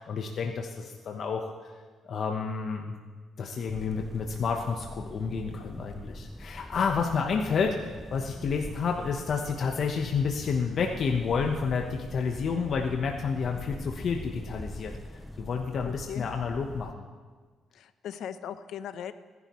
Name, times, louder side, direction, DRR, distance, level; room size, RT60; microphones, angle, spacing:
voice 1, 0.0-1.7 2.0-3.0 3.4-7.7 8.1-17.1, left 5 dB, 60° left, 2 dB, 1.1 m, -30 dB
sound 1, 3.7-16.9, left 1 dB, 5° left, 0.5 m, -43 dB
voice 2, 15.8-16.2 17.7-19.1, left 9 dB, 75° left, 12 dB, 0.7 m, -38 dB
30.0 x 11.0 x 3.2 m, 1.5 s
cardioid pair, 90°, 0 cm